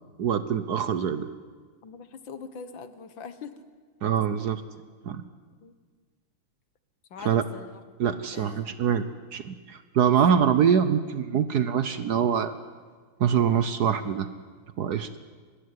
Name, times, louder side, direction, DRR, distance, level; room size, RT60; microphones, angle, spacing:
voice 1, 0.2-1.3 4.0-4.6 5.0-5.2 7.2-7.4 8.0-9.0 9.3-12.5 13.2-14.3 14.8-15.2, right 8 dB, 60° right, 12 dB, 1.2 m, -24 dB
voice 2, 1.8-3.6 5.6-5.7 7.1-8.1 8.3-8.7, left 6 dB, 65° left, 12 dB, 2.0 m, -43 dB
24.0 x 20.0 x 9.7 m, 1.5 s
omnidirectional pair, 2.3 m